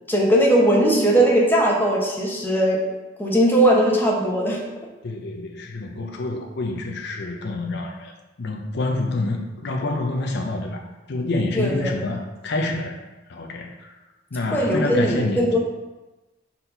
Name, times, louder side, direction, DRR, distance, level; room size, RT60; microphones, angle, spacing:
voice 1, 0.1-2.8 3.2-4.6 11.5-12.0 14.5-15.6, right 1 dB, 10° left, -3 dB, 1.0 m, -19 dB
voice 2, 5.0-8.1 8.4-10.8 11.1-14.0 14.3-15.5, left 2 dB, 60° left, 2 dB, 0.6 m, -27 dB
4.4 x 4.2 x 5.4 m, 1.1 s
head